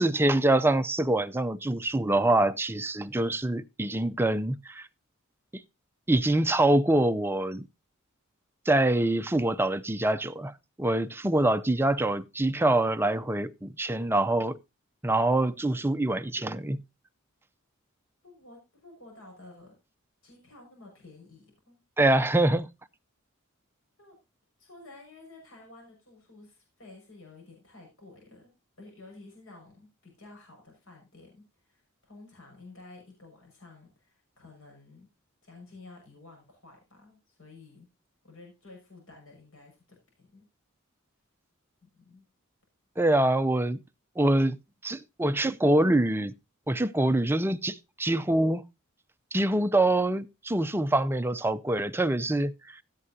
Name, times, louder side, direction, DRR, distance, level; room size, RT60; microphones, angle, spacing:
voice 1, 0.0-4.9 6.1-7.7 8.7-10.5 10.8-14.6 15.0-16.8 22.0-22.7 43.0-43.8 44.2-44.6 44.8-46.3 46.7-48.6 49.3-52.5, right 1 dB, 10° right, 0.5 m, -25 dB
voice 2, 18.2-19.7 20.2-21.8 24.0-24.1 24.6-28.5 28.8-35.1 35.4-37.9 38.2-40.5 41.8-42.2, left 2 dB, 70° left, 6.0 m, -52 dB
16.0 x 7.6 x 2.7 m
head